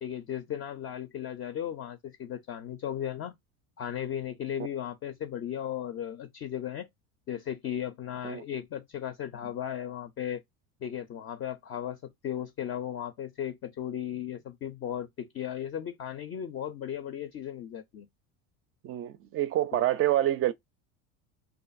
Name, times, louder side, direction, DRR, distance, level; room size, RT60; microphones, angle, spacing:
voice 1, 0.0-3.3 3.8-6.9 7.3-10.4 10.8-12.0 12.2-18.1 19.7-19.8, left 10 dB, 35° left, 0.5 m, -36 dB
voice 2, 18.8-20.5, right 13 dB, 35° right, 0.4 m, -27 dB
2.5 x 2.5 x 2.4 m
hypercardioid pair, 90°, 41 cm